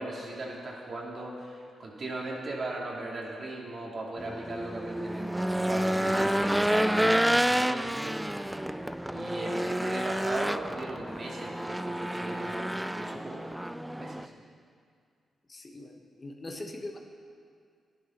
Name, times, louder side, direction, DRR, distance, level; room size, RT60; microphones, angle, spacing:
voice 1, 0.0-8.2 8.6-13.4 14.0-14.3, right 2 dB, 50° right, -2 dB, 2.7 m, -38 dB
Race car auto racing / Engine, 4.2-14.3, right 1 dB, 5° right, 0.4 m, -29 dB
voice 2, 15.5-17.0, left 2 dB, 35° left, 3 dB, 1.3 m, -41 dB
11.5 x 10.0 x 5.9 m, 2.2 s
cardioid pair, 60°, 0 cm